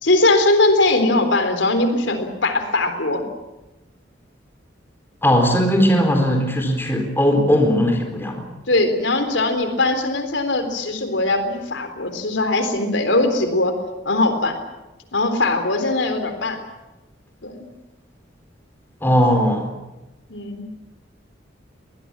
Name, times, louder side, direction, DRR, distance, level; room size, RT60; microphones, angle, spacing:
voice 1, 0.0-3.3 8.7-13.7 14.1-14.6 15.1-16.6 17.4-17.7 20.3-20.7, left 2 dB, 80° left, 8 dB, 3.7 m, -20 dB
voice 2, 5.2-8.5 19.0-19.7, equal, 10° left, 4 dB, 4.2 m, -18 dB
23.5 x 20.5 x 8.8 m, 1.0 s
head